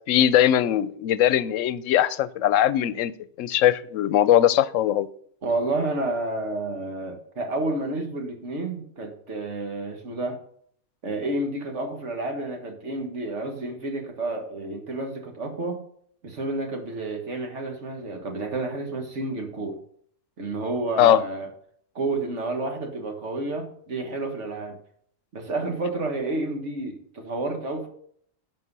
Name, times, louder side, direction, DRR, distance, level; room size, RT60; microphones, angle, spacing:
voice 1, 0.0-3.1 3.4-5.1 21.0-21.2, left 11 dB, 85° left, 17 dB, 0.9 m, -20 dB
voice 2, 5.4-10.4 11.0-15.8 16.2-19.8 20.4-21.5 22.0-24.8 25.3-27.9, right 2 dB, 70° right, 4 dB, 1.9 m, -30 dB
11.0 x 5.4 x 5.4 m, 0.63 s
omnidirectional pair, 1.3 m